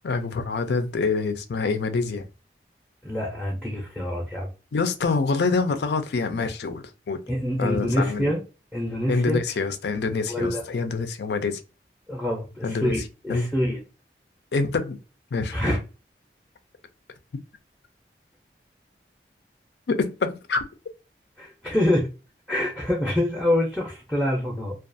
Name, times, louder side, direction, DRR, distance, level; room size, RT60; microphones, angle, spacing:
voice 1, 0.0-2.3 4.7-7.2 7.6-8.3 9.1-11.6 12.6-12.9 13.3-13.5 14.5-15.0 15.3-15.5 19.9-20.7, left 4 dB, 75° left, 0.4 m, -26 dB
voice 2, 3.0-4.5 7.3-8.4 8.7-9.4 10.3-10.6 12.1-13.8 15.5-15.8 21.4-22.1 22.5-24.7, left 1 dB, 5° left, 0.5 m, -25 dB
2.4 x 2.3 x 2.5 m
head